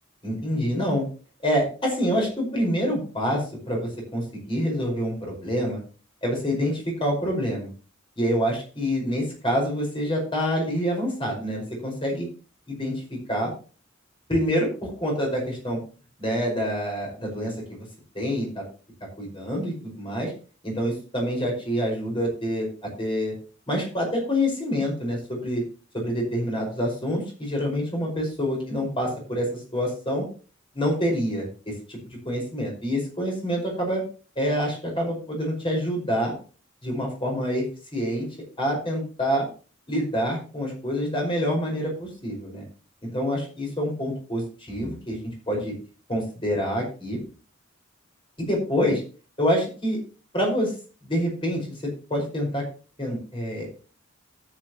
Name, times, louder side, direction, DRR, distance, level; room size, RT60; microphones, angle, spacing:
voice 1, 0.2-1.0 1.4-5.8 6.2-7.7 8.2-12.3 12.7-13.0 13.3-13.5 14.3-15.8 16.2-17.9 18.2-18.6 19.2-20.3 20.6-22.7 23.0-23.4 23.7-25.6 25.9-30.3 30.7-32.0 32.3-34.0 34.4-36.3 36.8-37.7 37.9-38.3 38.6-39.5 39.9-42.6 43.0-45.7 46.1-47.2 48.4-49.0 49.4-50.0 50.3-50.7 51.0-52.6 53.0-53.7, equal, 25° left, 0 dB, 5.2 m, -26 dB
13.0 x 9.0 x 3.0 m, 0.37 s
head